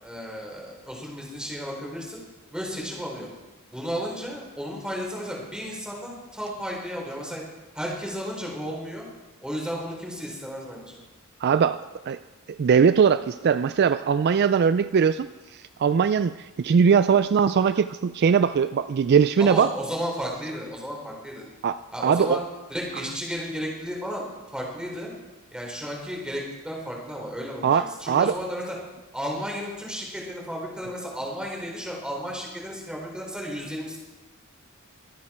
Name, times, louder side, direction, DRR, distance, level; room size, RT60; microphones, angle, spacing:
voice 1, 0.0-2.2 2.5-3.3 3.7-7.4 7.7-9.1 9.4-11.0 19.4-21.4 21.9-22.4 22.7-25.1 25.5-28.8 29.1-34.0, equal, 5° right, -2 dB, 4.0 m, -33 dB
voice 2, 11.4-11.8 12.1-12.2 12.6-15.3 15.8-19.7 21.6-21.8 22.0-22.4 27.6-28.3, right 6 dB, 50° right, 13 dB, 0.3 m, -20 dB
23.5 x 9.4 x 4.4 m, 1.2 s
head